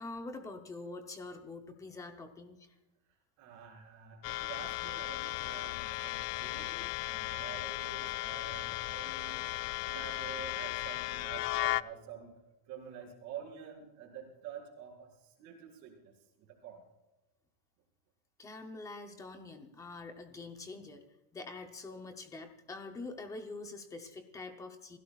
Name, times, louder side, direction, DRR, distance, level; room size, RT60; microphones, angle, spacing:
voice 1, 0.0-2.7 18.4-21.0 21.3-25.0, left 3 dB, 5° left, 5 dB, 0.7 m, -45 dB
voice 2, 3.4-12.3 12.6-16.8, right 8 dB, 35° right, -4 dB, 6.0 m, -48 dB
sound 1, 4.2-11.8, left 18 dB, 75° left, 0.6 m, -36 dB
30.0 x 16.0 x 2.4 m, 1.0 s
supercardioid pair, 180°, 49 cm